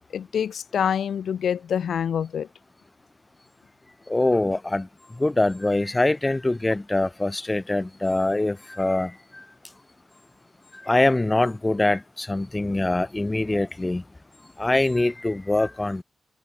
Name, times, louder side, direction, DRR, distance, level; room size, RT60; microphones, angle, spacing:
voice 1, 0.1-2.5, left 8 dB, 70° left, 0.9 m, -26 dB
voice 2, 4.1-4.9 5.2-9.1 10.9-14.0 14.6-16.0, left 2 dB, 15° left, 1.1 m, -23 dB
wide cardioid pair, 150°, 0 cm